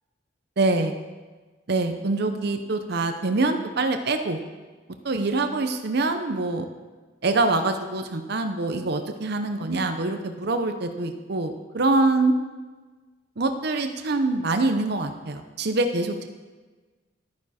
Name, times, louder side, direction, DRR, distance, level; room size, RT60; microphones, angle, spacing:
voice 1, 0.6-1.0 1.7-4.4 5.0-6.7 7.2-12.4 13.4-16.3, right 2 dB, 60° right, 7 dB, 0.7 m, -25 dB
12.5 x 9.5 x 4.3 m, 1.3 s
head